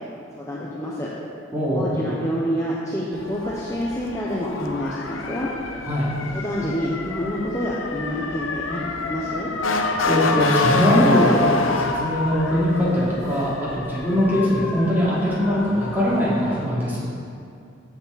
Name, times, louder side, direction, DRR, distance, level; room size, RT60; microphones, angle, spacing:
voice 1, 0.4-1.1 1.7-5.5 6.3-9.5, equal, 15° left, -6 dB, 0.9 m, -28 dB
Motor vehicle (road) / Siren, 3.1-16.7, left 3 dB, 90° left, 0.8 m, -27 dB
voice 2, 9.7-17.1, equal, 10° right, -9 dB, 2.8 m, -21 dB
14.0 x 7.0 x 4.2 m, 2.4 s
head